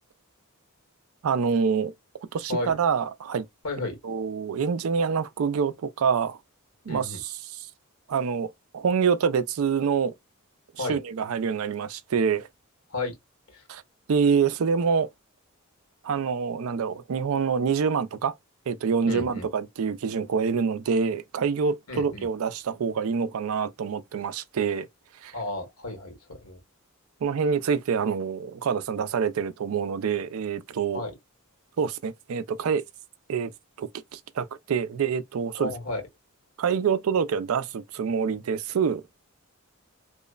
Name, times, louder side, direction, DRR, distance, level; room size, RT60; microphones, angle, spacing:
voice 1, 1.2-1.9 2.3-3.5 4.0-6.4 6.9-7.7 8.1-10.1 10.7-12.5 13.7-13.8 14.1-15.1 16.0-18.3 18.7-24.9 25.2-25.4 27.2-31.0 31.8-32.8 33.3-33.5 33.8-35.7 36.6-39.0, right 6 dB, 75° right, 0.4 m, -26 dB
voice 2, 3.6-4.0 6.9-7.2 10.8-11.0 12.9-13.1 13.5-13.6 19.1-19.5 21.9-22.3 25.3-26.6 30.9-31.1 35.6-36.0, left 2 dB, 90° left, 1.4 m, -32 dB
3.0 x 2.1 x 2.3 m
head